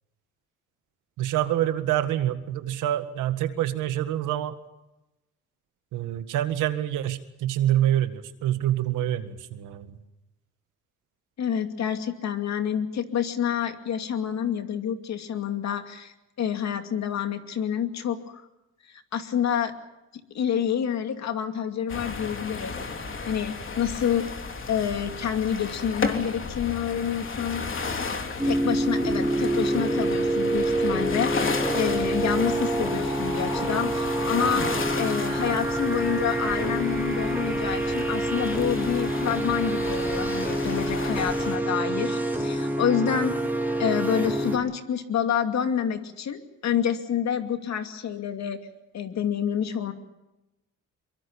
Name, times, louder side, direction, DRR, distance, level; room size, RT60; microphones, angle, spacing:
voice 1, 1.2-4.5 5.9-10.0, right 12 dB, 90° right, 10 dB, 1.8 m, -26 dB
voice 2, 11.4-16.1 16.4-18.5 19.1-19.7 20.3-22.8 23.3-24.3 24.7-27.6 28.4-34.7 35.0-43.3 43.8-48.6 48.9-49.9, left 8 dB, 65° left, 7 dB, 2.6 m, -28 dB
sound 1, 21.9-41.6, left 4 dB, 40° left, 3.3 m, -34 dB
sound 2, 28.4-44.6, right 1 dB, 5° right, 4.4 m, -27 dB
23.5 x 23.5 x 7.0 m, 0.96 s
cardioid pair, 90°, 30 cm